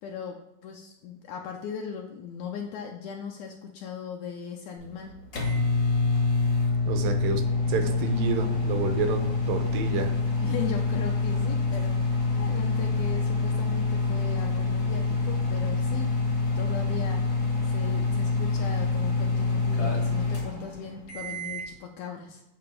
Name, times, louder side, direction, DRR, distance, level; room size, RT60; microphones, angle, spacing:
voice 1, 0.0-5.1 10.4-16.1 16.6-17.3 17.6-22.4, left 7 dB, 80° left, 2 dB, 1.7 m, -38 dB
sound 1, 4.8-21.7, left 3 dB, 60° left, 0.8 m, -26 dB
voice 2, 6.9-7.4 7.7-10.1, right 5 dB, 85° right, 6 dB, 2.4 m, -29 dB
8.6 x 2.9 x 5.2 m, 0.90 s
omnidirectional pair, 3.8 m